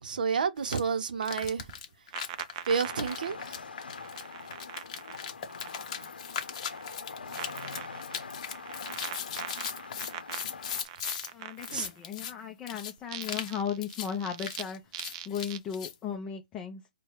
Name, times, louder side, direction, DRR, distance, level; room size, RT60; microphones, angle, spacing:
voice 1, 0.0-1.6 2.7-3.6 11.7-11.9, right 6 dB, 65° right, 0.7 m, -30 dB
sound 1, 0.6-0.8 1.2-11.3 11.6-12.3 12.7-12.9 13.2-13.5 13.8-14.1 14.4-15.9, left 8 dB, 40° left, 0.9 m, -38 dB
sound 2, 1.4-6.1 6.4-6.9 7.3-12.1 13.0-14.6 14.9-15.6, right 10 dB, 35° right, 0.4 m, -42 dB
sound 3, 2.7-10.8, left 5 dB, 85° left, 0.7 m, -43 dB
voice 2, 11.3-14.8 15.3-16.8, left 8 dB, 15° left, 0.5 m, -36 dB
4.7 x 2.2 x 3.0 m
hypercardioid pair, 150°, 5 cm